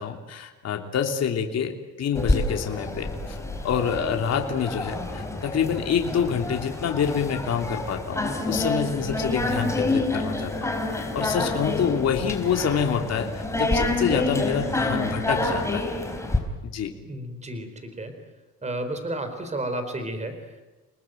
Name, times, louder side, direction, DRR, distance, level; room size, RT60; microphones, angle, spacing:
voice 1, 0.0-1.7 2.0-3.4 3.6-15.9 16.6-16.9, left 7 dB, 55° left, 3 dB, 3.3 m, -27 dB
sound 1, 2.1-16.4, left 2 dB, 10° left, 4.2 m, -28 dB
voice 2, 17.0-18.2 18.6-20.6, right 1 dB, 20° right, 9 dB, 4.3 m, -32 dB
29.5 x 20.0 x 9.2 m, 1.1 s
cardioid pair, 135°, 32 cm